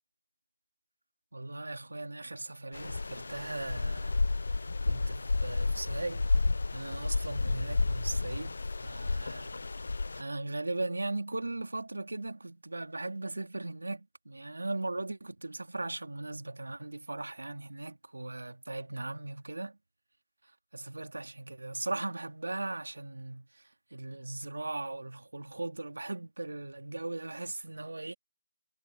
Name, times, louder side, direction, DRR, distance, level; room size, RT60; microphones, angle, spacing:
voice 1, 1.3-6.2 6.7-8.5 8.8-9.6 10.1-19.8 20.7-23.6 23.9-28.1, right 2 dB, 85° right, 3.1 m, -38 dB
sound 1, 2.7-10.2, left 3 dB, 45° left, 0.7 m, -31 dB
figure-of-eight pair, 180°, 0 cm